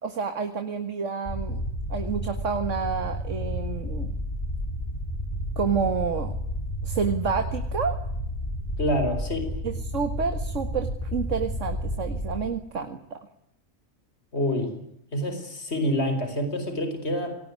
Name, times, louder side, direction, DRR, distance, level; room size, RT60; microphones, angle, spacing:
voice 1, 0.0-1.6 1.9-4.2 5.6-6.3 6.8-8.0 9.6-13.2, right 6 dB, 60° right, 8 dB, 2.1 m, -29 dB
sound 1, 1.3-12.4, equal, 30° left, 5.4 m, -31 dB
voice 2, 8.8-9.5 14.3-14.7 15.1-17.4, left 1 dB, 50° left, 7 dB, 4.9 m, -27 dB
27.0 x 19.5 x 9.6 m, 0.79 s
omnidirectional pair, 1.4 m